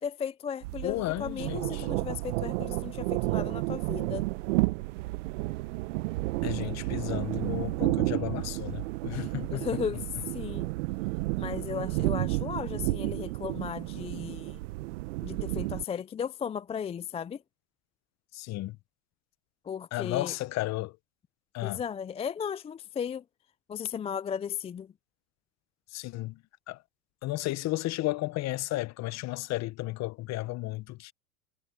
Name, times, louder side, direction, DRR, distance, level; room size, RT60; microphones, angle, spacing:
voice 1, 0.0-4.3 9.5-10.7 11.4-14.6 15.2-17.4 19.6-20.3 21.6-23.2 23.7-24.9, left 7 dB, 15° left, 0.5 m, -35 dB
sound 1, 0.6-15.8, right 22 dB, 60° right, 1.1 m, -31 dB
voice 2, 0.8-1.9 6.4-9.7 9.9-10.0 18.3-18.8 19.9-20.9 21.5-21.8 25.9-26.4 26.7-26.8 27.2-31.1, left 18 dB, 40° left, 1.2 m, -33 dB
hypercardioid pair, 105°, 42 cm